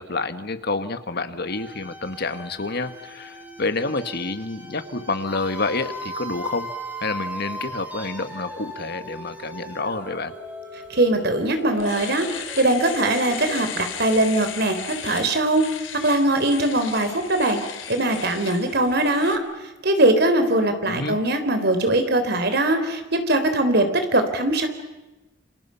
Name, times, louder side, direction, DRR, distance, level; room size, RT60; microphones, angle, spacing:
voice 1, 0.0-6.7 7.0-10.3 20.8-21.2, left 3 dB, 55° left, 10 dB, 1.6 m, -28 dB
sound 1, 1.4-14.3, right 1 dB, 10° right, 5.4 m, -38 dB
voice 2, 10.9-15.6 16.0-17.6 17.9-19.4 19.8-24.7, right 1 dB, 55° right, 7 dB, 3.8 m, -21 dB
Domestic sounds home sounds, 11.1-11.2 11.6-19.4, left 9 dB, 85° left, 2.9 m, -36 dB
29.0 x 27.0 x 5.8 m, 1.1 s
head